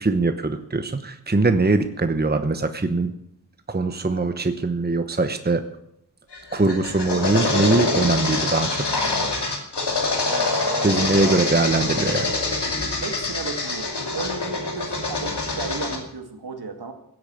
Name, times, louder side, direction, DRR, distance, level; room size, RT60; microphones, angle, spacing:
voice 1, 0.0-3.1 3.7-5.6 6.5-8.8 10.8-12.3, right 3 dB, 25° right, 8 dB, 1.0 m, -22 dB
sound 1, 6.3-16.0, left 3 dB, 80° left, 2.6 m, -25 dB
voice 2, 10.2-11.6 13.0-16.9, right 4 dB, 70° right, 5 dB, 2.2 m, -34 dB
16.5 x 8.6 x 7.9 m, 0.77 s
wide cardioid pair, 75°, 40 cm